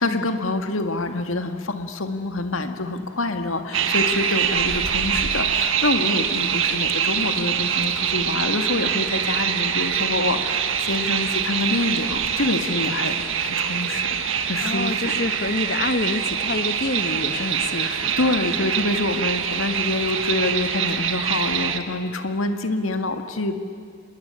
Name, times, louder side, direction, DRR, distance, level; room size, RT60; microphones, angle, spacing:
voice 1, 0.0-14.2 14.5-15.1 17.8-23.6, left 2 dB, 80° left, 7 dB, 1.9 m, -26 dB
sound 1, 3.7-21.8, right 8 dB, 70° right, 1.5 m, -24 dB
voice 2, 14.6-18.4, left 2 dB, 50° left, 10 dB, 1.2 m, -27 dB
27.0 x 20.5 x 9.9 m, 2.2 s
head